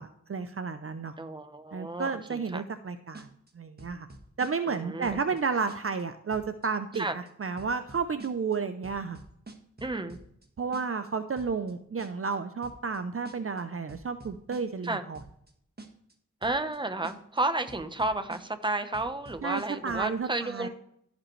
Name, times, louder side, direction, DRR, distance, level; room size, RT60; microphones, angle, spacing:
voice 1, 0.0-1.1 1.7-3.3 3.5-4.1 4.4-9.2 10.6-15.2 19.4-20.7, right 5 dB, 50° right, 9 dB, 0.6 m, -32 dB
voice 2, 1.2-2.6 4.7-5.1 7.0-7.1 9.8-10.2 14.8-15.0 16.4-20.7, right 2 dB, 15° right, 9 dB, 0.9 m, -32 dB
sound 1, 3.1-3.5 3.8-4.8 5.0-5.4 5.7-6.0 6.3-6.7 6.9-7.3 7.6-8.6 8.8-10.5 10.7-11.1 11.4-11.7 12.0-12.3 12.6-13.0 13.2-13.6 13.9-14.9 15.1-15.5 15.8-16.1 16.4-16.8 17.0-17.4 17.7-18.7 18.9-20.1, right 2 dB, 30° right, 1.4 m, -47 dB
15.5 x 5.2 x 3.2 m, 0.71 s
wide cardioid pair, 70°, 30 cm